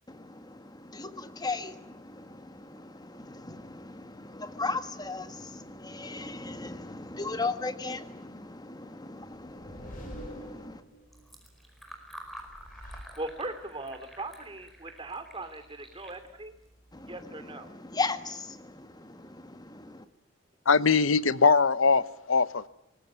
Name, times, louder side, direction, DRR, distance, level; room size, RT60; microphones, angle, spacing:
voice 1, 0.1-10.8 16.9-20.1, left 3 dB, 20° left, 1.5 m, -37 dB
sound 1, 9.2-11.2 12.2-13.7, equal, 45° left, 6.7 m, -46 dB
Fill (with liquid), 11.0-17.2, right 1 dB, ahead, 4.8 m, -50 dB
voice 2, 13.2-16.5 17.1-17.7, right 2 dB, 25° right, 2.7 m, -39 dB
voice 3, 20.7-22.7, left 5 dB, 80° left, 0.9 m, -22 dB
24.0 x 20.0 x 9.5 m
head